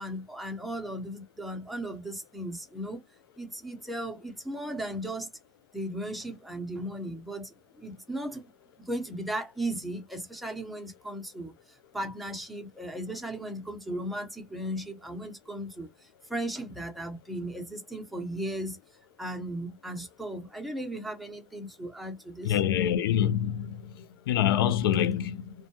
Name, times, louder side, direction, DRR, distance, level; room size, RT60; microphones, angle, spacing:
voice 1, 0.0-3.0 3.4-5.3 5.7-8.4 8.8-11.5 11.9-18.8 19.2-22.6, right 1 dB, ahead, 0.8 m, -36 dB
voice 2, 22.4-23.9 24.3-25.5, left 10 dB, 90° left, 0.4 m, -26 dB
2.3 x 2.1 x 2.8 m
supercardioid pair, 125°, 12 cm